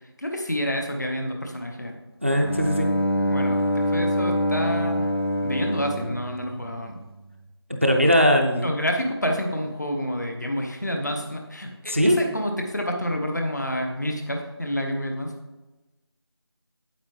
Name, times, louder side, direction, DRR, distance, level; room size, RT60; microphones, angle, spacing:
voice 1, 0.2-1.9 3.3-5.1 5.4-7.0 8.6-15.3, equal, 40° left, 3 dB, 1.0 m, -28 dB
voice 2, 2.2-2.9 7.8-8.7 11.9-12.2, equal, 30° right, 3 dB, 0.5 m, -20 dB
Bowed string instrument, 2.4-7.2, equal, 65° left, 1.4 m, -25 dB
8.5 x 7.9 x 3.2 m, 1.1 s
figure-of-eight pair, 170°, 14 cm